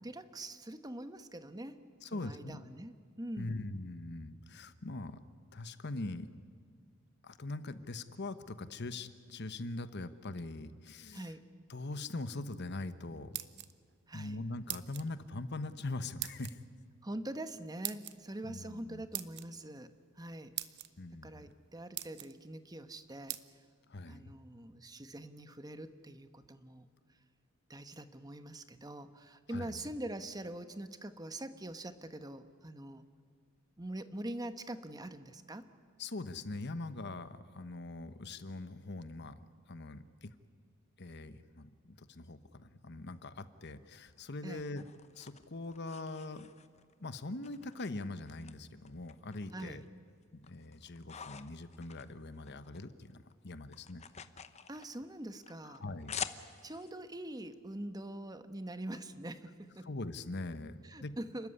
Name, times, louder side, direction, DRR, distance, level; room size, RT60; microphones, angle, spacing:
voice 1, 0.0-3.6 11.1-11.4 14.1-14.4 17.0-20.5 21.2-23.4 24.1-26.9 27.7-33.0 33.8-35.7 44.4-44.7 49.5-49.8 54.7-55.8 56.6-59.9 60.8-61.5, right 1 dB, 20° right, 10 dB, 1.1 m, -44 dB
voice 2, 2.0-2.7 3.4-5.2 5.5-6.3 7.2-11.3 11.7-13.4 14.1-16.6 18.4-19.0 21.0-21.5 23.9-24.4 29.5-29.9 36.0-39.4 39.7-40.3 41.0-44.8 45.1-46.5 47.0-49.8 50.4-54.0 55.6-56.1 59.8-61.1, left 2 dB, 55° left, 12 dB, 1.1 m, -42 dB
sound 1, 13.1-14.0 14.7-15.1 16.2-16.5 17.8-18.2 19.1-19.5 20.2-20.3 20.6-20.9 21.5-21.6 21.9-22.3 23.3-23.4, right 14 dB, 55° right, 0.8 m, -40 dB
sound 2, 44.1-46.9 47.4-48.5 48.9-49.9 50.2-52.8 53.1-56.9, left 7 dB, 30° left, 0.8 m, -47 dB
29.5 x 13.5 x 9.8 m, 2.1 s
head